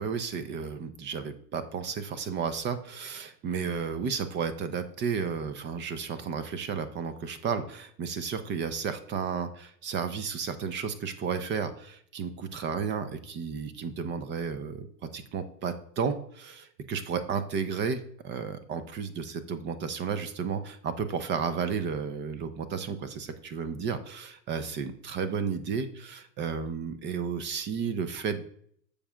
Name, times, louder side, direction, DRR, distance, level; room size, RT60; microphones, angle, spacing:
voice 1, 0.0-28.5, right 6 dB, 25° right, 11 dB, 0.6 m, -33 dB
15.0 x 5.2 x 2.3 m, 0.62 s
hypercardioid pair, 105°, 49 cm